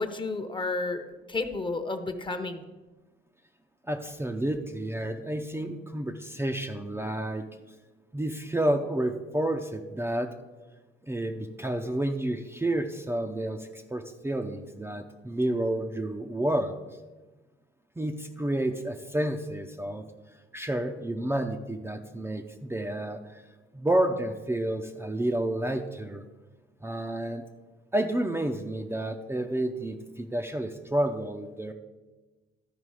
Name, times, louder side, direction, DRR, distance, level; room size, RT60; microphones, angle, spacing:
voice 1, 0.0-2.6, left 3 dB, 25° left, 8 dB, 0.9 m, -31 dB
voice 2, 3.9-7.5 8.1-10.3 11.0-16.7 18.0-20.0 20.5-23.4 23.7-26.2 26.8-27.4 27.9-31.7, right 1 dB, 10° right, 3 dB, 0.6 m, -30 dB
13.0 x 4.9 x 4.8 m, 1.2 s
cardioid pair, 90°, 20 cm